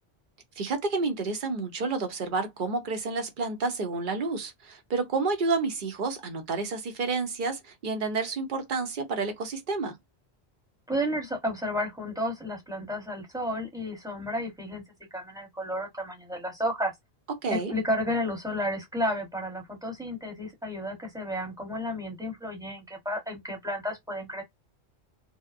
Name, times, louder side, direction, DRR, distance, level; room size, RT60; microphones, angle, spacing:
voice 1, 0.6-9.9 17.4-17.7, right 4 dB, 55° right, 0.8 m, -30 dB
voice 2, 10.9-14.8 15.1-16.9 17.5-24.4, equal, 5° right, 1.0 m, -32 dB
2.7 x 2.1 x 2.5 m
omnidirectional pair, 1.1 m